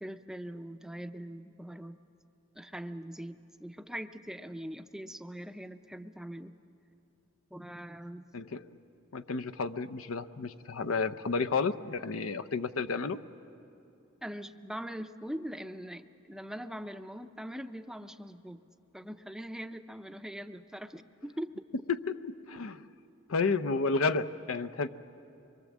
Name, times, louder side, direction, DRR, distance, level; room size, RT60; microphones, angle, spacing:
voice 1, 0.0-2.0 2.6-6.5 7.5-8.3 14.2-18.6 18.9-21.5, equal, 5° right, 9 dB, 0.5 m, -42 dB
voice 2, 8.3-8.7 9.1-13.2 21.9-22.8 23.3-24.9, left 4 dB, 85° left, 12 dB, 0.7 m, -31 dB
25.0 x 23.0 x 7.3 m, 2.8 s
head